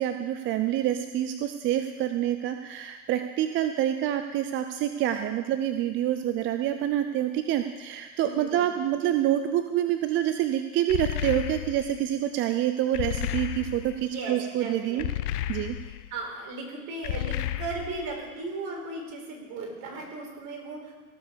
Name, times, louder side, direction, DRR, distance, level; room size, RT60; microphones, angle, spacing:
voice 1, 0.0-15.0 15.5-15.8, right 11 dB, 25° right, 8 dB, 0.5 m, -27 dB
voice 2, 8.2-8.6 14.0-15.1 16.1-20.9, right 3 dB, 45° right, 0 dB, 4.4 m, -36 dB
sound 1, 10.9-12.0 12.9-14.0 15.0-16.1 17.0-18.1, left 12 dB, 80° left, 0.8 m, -32 dB
16.5 x 7.1 x 6.9 m, 1.3 s
hypercardioid pair, 110°, 46 cm